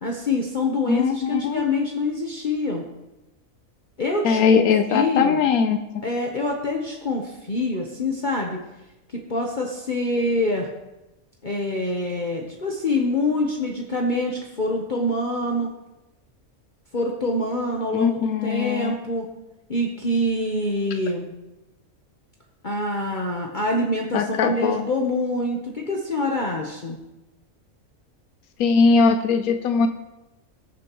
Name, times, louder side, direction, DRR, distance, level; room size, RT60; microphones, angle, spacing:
voice 1, 0.0-2.8 4.0-4.6 4.9-5.4 6.0-8.6 9.3-10.7 11.4-15.7 16.9-19.3 19.7-21.3 22.6-27.0, left 2 dB, 40° left, 0 dB, 1.1 m, -25 dB
voice 2, 0.8-1.7 4.2-5.8 17.9-19.0 24.1-24.9 28.6-29.9, left 5 dB, 90° left, 8 dB, 1.1 m, -20 dB
20.0 x 7.0 x 3.0 m, 0.98 s
omnidirectional pair, 1.5 m